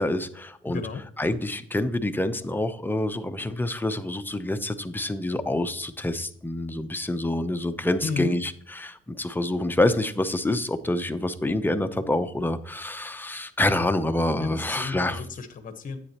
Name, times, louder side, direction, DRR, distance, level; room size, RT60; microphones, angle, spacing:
voice 1, 0.0-0.8 1.2-15.2, left 1 dB, 10° left, 9 dB, 0.7 m, -27 dB
voice 2, 0.7-1.0 8.0-8.4 14.4-16.0, left 5 dB, 45° left, 9 dB, 1.1 m, -33 dB
9.7 x 8.1 x 2.9 m, 0.64 s
cardioid pair, 90°, 20 cm